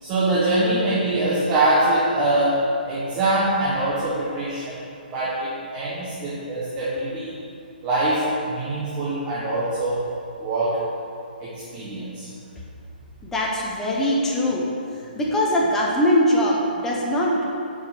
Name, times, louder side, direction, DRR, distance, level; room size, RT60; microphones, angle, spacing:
voice 1, 0.0-4.8 5.1-7.3 7.8-10.0 10.4-10.8 11.4-12.3, right 1 dB, 20° right, -8 dB, 1.2 m, -23 dB
voice 2, 13.2-14.6 15.2-17.4, left 1 dB, 5° left, -4 dB, 0.8 m, -21 dB
6.9 x 5.2 x 5.4 m, 2.4 s
hypercardioid pair, 160°, 5 cm